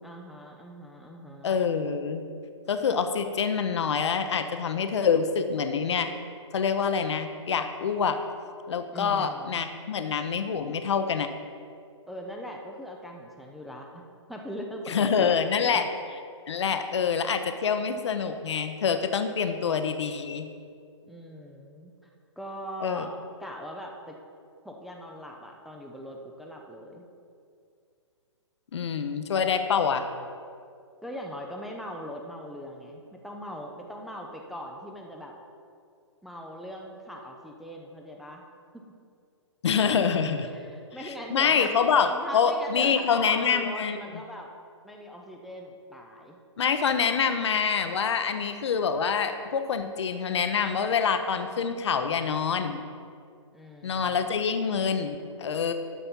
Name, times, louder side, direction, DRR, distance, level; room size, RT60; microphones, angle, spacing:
voice 1, 0.0-1.6 8.9-9.7 12.1-14.0 14.3-15.8 21.1-21.9 22.4-23.1 23.4-24.2 24.6-27.0 31.0-35.4 36.2-38.4 38.7-38.9 40.5-41.8 42.1-44.5 44.8-46.4 53.5-54.3, equal, ahead, 0 dB, 0.5 m, -40 dB
voice 2, 1.4-2.3 2.7-6.1 6.5-8.2 8.7-11.3 14.9-15.9 16.5-20.5 22.8-23.1 28.7-30.0 39.6-40.5 41.0-44.0 46.6-52.8 53.8-55.7, left 6 dB, 65° left, 8 dB, 0.7 m, -26 dB
12.0 x 4.4 x 5.3 m, 2.4 s
figure-of-eight pair, 130°, 16 cm